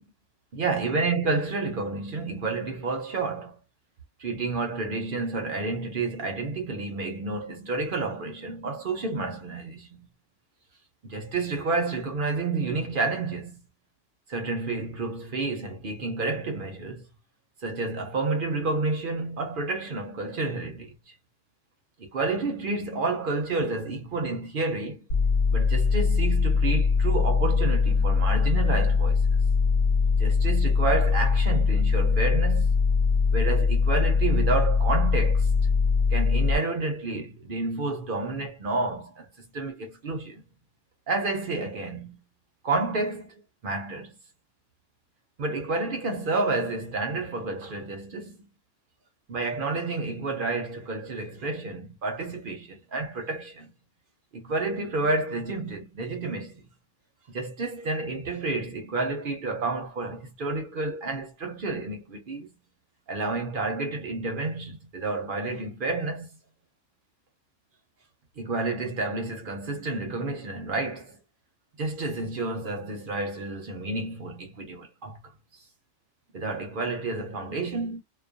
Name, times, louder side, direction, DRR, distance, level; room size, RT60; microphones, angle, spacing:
voice 1, 0.5-3.6 4.2-10.1 11.0-13.6 14.3-17.1 17.6-21.1 22.0-25.1 25.5-29.2 30.2-32.7 33.3-35.5 36.1-40.4 41.1-42.2 42.6-44.2 45.4-48.5 49.3-53.7 54.3-56.7 57.3-62.5 63.1-66.4 68.4-71.2 71.8-75.2 76.3-78.0, right 3 dB, 55° right, 0.7 m, -30 dB
sound 1, 25.1-36.6, left 5 dB, 85° left, 1.0 m, -22 dB
2.2 x 2.2 x 2.5 m
omnidirectional pair, 1.2 m